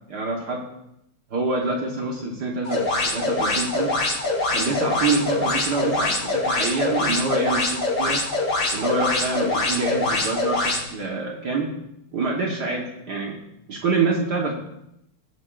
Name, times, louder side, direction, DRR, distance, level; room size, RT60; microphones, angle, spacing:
voice 1, 0.1-0.6 1.3-3.9 4.5-8.2 8.7-11.7 12.1-13.4 13.7-14.5, right 3 dB, 55° right, -1 dB, 1.9 m, -26 dB
sound 1, 2.6-10.8, left 2 dB, 60° left, 5.5 m, -24 dB
22.5 x 7.9 x 2.6 m, 0.82 s
omnidirectional pair, 2.2 m